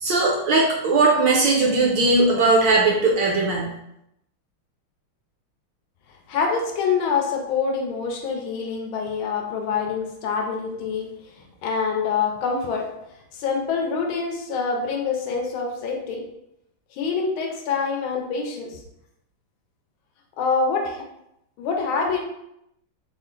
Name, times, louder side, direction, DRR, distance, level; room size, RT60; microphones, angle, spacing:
voice 1, 0.0-3.7, right 3 dB, 70° right, -2 dB, 1.2 m, -19 dB
voice 2, 6.3-11.1 11.6-12.9 13.3-16.2 16.9-18.8 20.4-21.0 21.6-22.2, left 5 dB, 80° left, 2 dB, 1.4 m, -25 dB
4.2 x 2.1 x 3.7 m, 0.82 s
omnidirectional pair, 2.3 m